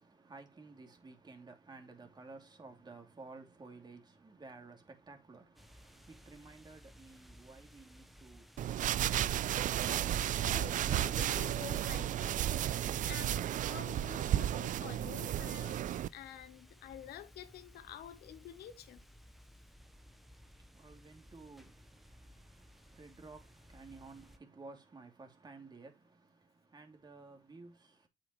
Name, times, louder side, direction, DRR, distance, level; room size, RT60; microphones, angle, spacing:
voice 1, 0.0-10.0 19.8-28.1, right 3 dB, 25° right, 2.9 m, -55 dB
sound 1, 5.5-24.4, equal, ahead, 1.1 m, -58 dB
sound 2, 8.6-16.1, right 12 dB, 50° right, 0.4 m, -33 dB
voice 2, 10.4-12.4 13.1-19.1, left 11 dB, 70° left, 1.1 m, -49 dB
8.5 x 7.4 x 3.2 m
cardioid pair, 110°, 17 cm